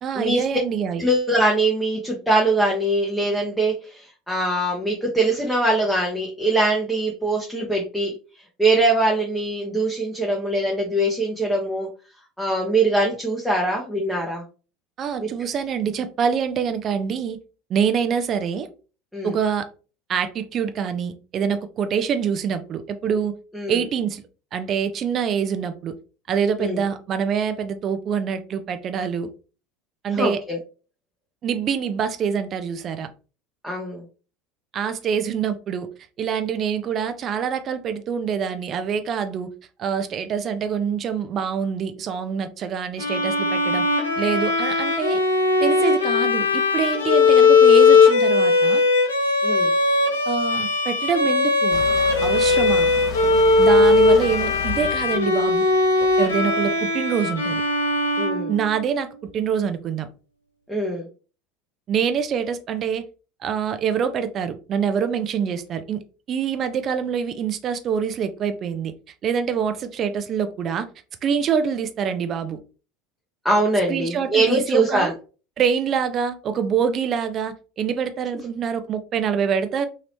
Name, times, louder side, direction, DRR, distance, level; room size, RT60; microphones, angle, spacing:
voice 1, 0.0-1.1 15.0-17.4 17.7-18.7 19.2-19.7 20.1-23.3 23.7-24.2 24.5-25.9 26.3-29.3 30.0-30.4 31.4-33.1 34.7-35.9 36.2-39.5 39.8-43.8 44.2-45.2 45.6-48.8 50.3-51.8 52.2-52.9 53.6-55.6 56.2-57.6 58.5-59.1 59.3-60.1 61.9-63.0 63.4-66.0 66.3-68.9 69.2-70.9 71.2-72.6 73.9-75.1 75.6-79.9, right 7 dB, 40° right, 10 dB, 0.4 m, -25 dB
voice 2, 1.0-8.1 8.6-11.9 12.4-14.4 15.2-15.3 19.1-19.3 23.5-23.8 26.6-26.8 30.1-30.6 33.6-34.0 49.4-49.7 58.2-58.5 60.7-61.1 73.4-75.1, right 2 dB, ahead, -2 dB, 0.8 m, -22 dB
Bowed string instrument, 43.0-59.0, left 3 dB, 75° left, 0.6 m, -19 dB
sound 1, 51.7-56.7, left 6 dB, 40° left, 0.9 m, -34 dB
2.9 x 2.8 x 2.9 m, 0.35 s
figure-of-eight pair, 70°, 0 cm